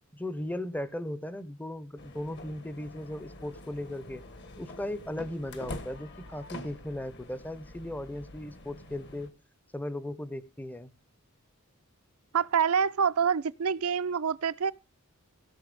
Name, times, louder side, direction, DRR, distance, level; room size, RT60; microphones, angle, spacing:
voice 1, 0.1-4.2 4.6-9.3 9.7-10.9, left 1 dB, 10° left, 0.6 m, -37 dB
sound 1, 2.0-9.3, left 1 dB, 50° left, 1.3 m, -46 dB
voice 2, 12.3-14.7, right 7 dB, 75° right, 0.6 m, -26 dB
16.5 x 5.7 x 5.2 m
head